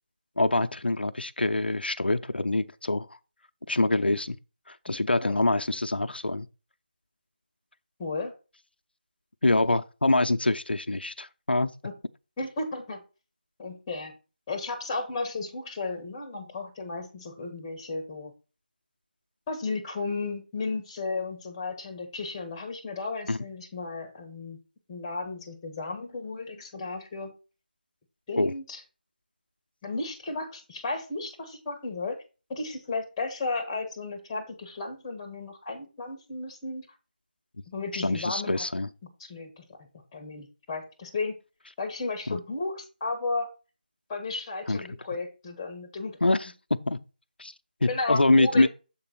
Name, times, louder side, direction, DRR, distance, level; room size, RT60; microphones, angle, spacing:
voice 1, 0.4-3.1 3.7-4.4 4.7-6.5 9.4-11.7 23.3-23.4 28.4-28.5 37.9-38.9 42.3-42.4 44.7-44.8 46.2-47.0 47.4-47.5 47.8-48.7, left 2 dB, 85° left, 0.6 m, -25 dB
voice 2, 8.0-8.3 11.8-11.9 12.4-13.0 13.6-14.1 14.5-18.3 19.5-24.6 24.9-27.3 28.3-28.8 29.8-32.2 32.5-36.8 37.7-38.7 39.2-41.3 41.8-43.5 44.1-46.2 47.9-48.7, left 3 dB, 10° left, 1.2 m, -34 dB
7.4 x 3.9 x 5.8 m
figure-of-eight pair, 165°, 5 cm